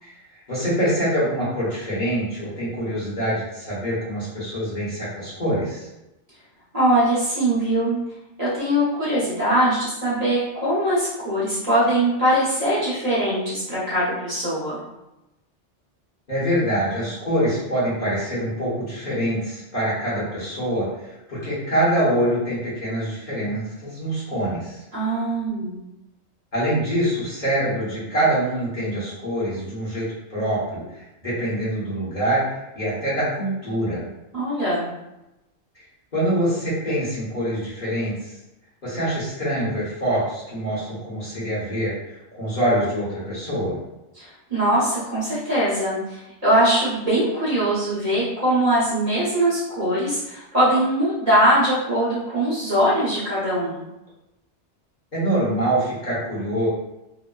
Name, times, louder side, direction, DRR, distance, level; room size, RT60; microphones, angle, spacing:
voice 1, 0.0-5.9 16.3-24.8 26.5-34.1 36.1-38.4 38.8-43.8 55.1-56.7, right 1 dB, 45° left, -9 dB, 1.1 m, -25 dB
voice 2, 6.7-8.0 8.4-14.8 24.9-25.8 34.3-34.9 44.1-53.8, right 1 dB, 35° right, -10 dB, 0.9 m, -21 dB
2.9 x 2.1 x 2.2 m, 0.94 s
omnidirectional pair, 1.2 m